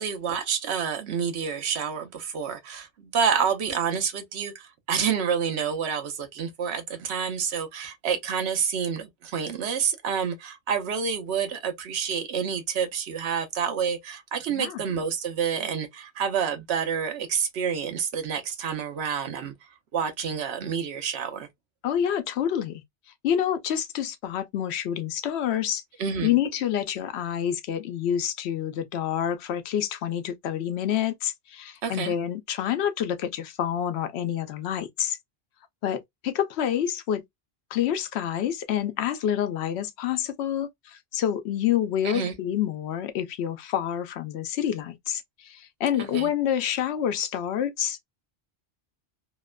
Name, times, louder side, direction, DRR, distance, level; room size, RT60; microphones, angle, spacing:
voice 1, 0.0-19.5 19.9-21.5 26.0-26.4 31.8-32.1 42.0-42.3 46.0-46.3, right 7 dB, 85° right, 1.0 m, -28 dB
voice 2, 14.5-14.8 21.8-22.8 23.2-25.8 26.2-35.2 35.8-37.2 37.7-48.0, left 10 dB, 90° left, 0.8 m, -28 dB
2.8 x 2.1 x 2.2 m
omnidirectional pair, 1.1 m